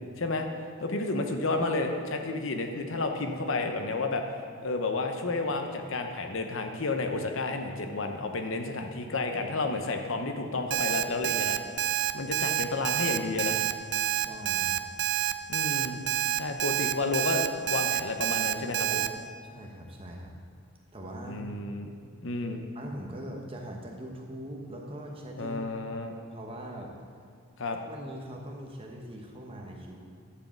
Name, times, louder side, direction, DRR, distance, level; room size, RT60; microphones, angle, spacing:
voice 1, 0.2-0.5 0.8-4.2 4.6-11.8 12.1-13.6 15.5-16.0 16.4-19.1 21.2-21.9 22.2-22.6 25.4-26.1 27.6-27.8, left 3 dB, 60° left, 5 dB, 0.8 m, -31 dB
Alarm, 10.7-19.1, right 12 dB, 50° right, 0.4 m, -28 dB
voice 2, 14.1-14.8 19.4-20.4 20.9-21.5 22.7-25.6 26.0-26.9 27.9-30.0, equal, 25° right, 0 dB, 1.1 m, -41 dB
11.0 x 4.9 x 7.2 m, 2.3 s
head